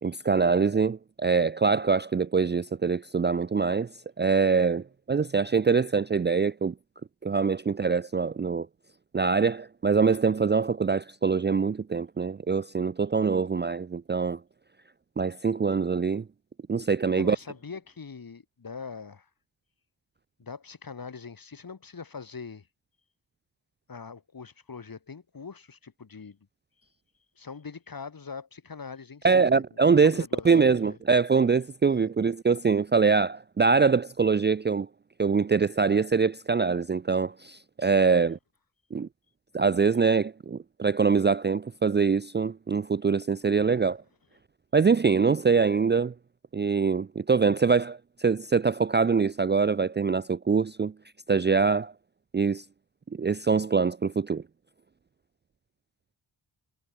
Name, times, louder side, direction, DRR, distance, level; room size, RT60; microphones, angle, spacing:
voice 1, 0.0-3.9 4.2-6.7 7.2-8.7 9.1-14.4 15.2-16.2 16.7-17.4 29.2-34.9 35.2-38.4 38.9-39.1 39.5-44.0 44.7-46.1 46.5-50.9 51.3-51.9 52.3-52.6 53.1-54.4, right 5 dB, 25° right, 0.5 m, -24 dB
voice 2, 17.2-19.3 20.4-22.7 23.9-26.4 27.4-29.6 30.0-31.0 31.9-32.1 43.4-43.7, left 5 dB, 50° left, 4.3 m, -42 dB
cardioid pair, 80°, 45 cm